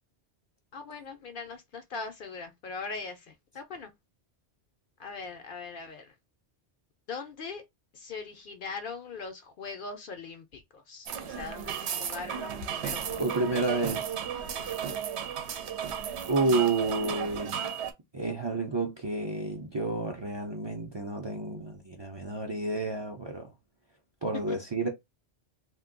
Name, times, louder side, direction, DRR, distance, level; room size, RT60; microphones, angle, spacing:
voice 1, 0.7-3.9 5.0-6.1 7.1-7.6 7.9-14.0 14.4-14.8 24.3-24.6, left 4 dB, 60° left, 0.6 m, -41 dB
sound 1, 11.1-17.9, right 8 dB, 75° right, 0.9 m, -34 dB
voice 2, 13.2-14.1 16.3-17.6 18.1-23.5 24.2-24.9, right 3 dB, 35° right, 0.5 m, -30 dB
2.5 x 2.2 x 3.6 m
omnidirectional pair, 1.1 m